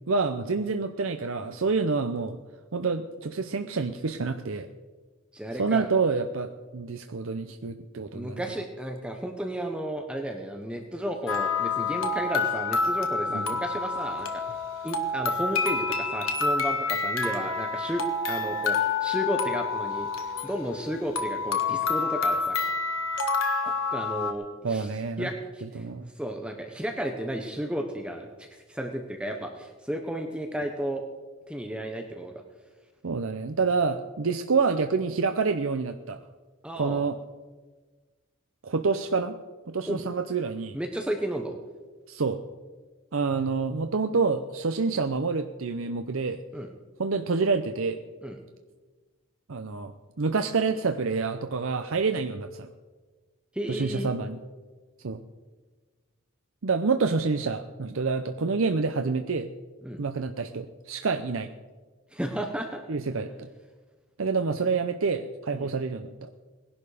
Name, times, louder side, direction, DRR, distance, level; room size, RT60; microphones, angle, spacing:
voice 1, 0.1-2.4 2.7-4.7 5.6-8.4 13.3-13.5 24.6-25.3 25.7-26.1 33.0-36.2 36.8-37.2 38.6-39.4 39.7-40.8 42.1-42.4 43.1-46.4 47.0-48.0 49.5-52.7 53.7-54.4 55.0-55.2 56.6-59.5 60.0-61.5 62.9-63.3 64.2-66.3, right 4 dB, 80° right, 7 dB, 0.7 m, -27 dB
voice 2, 5.3-5.9 8.1-14.4 14.8-22.6 23.6-24.9 25.2-25.9 26.1-31.0 31.5-32.3 36.6-37.0 39.8-40.0 40.7-41.6 46.5-46.7 48.2-48.4 53.5-54.1 59.8-60.0 62.1-62.8 65.5-65.7, equal, 5° right, 3 dB, 1.0 m, -33 dB
sound 1, 11.3-24.3, left 4 dB, 80° left, 1.5 m, -28 dB
19.0 x 11.5 x 5.0 m, 1.3 s
head